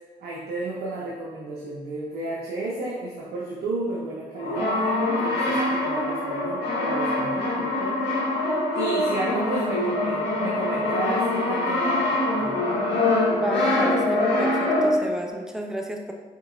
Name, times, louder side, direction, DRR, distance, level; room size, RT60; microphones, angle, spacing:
voice 1, 0.2-8.1 8.4-12.8, right 2 dB, 75° right, -4 dB, 0.8 m, -32 dB
Brass instrument, 4.4-15.2, left 2 dB, 75° left, 1.1 m, -24 dB
voice 2, 13.3-16.1, right 1 dB, 5° right, 2 dB, 0.8 m, -31 dB
5.3 x 3.7 x 2.6 m, 1.3 s
hypercardioid pair, 50°, 17 cm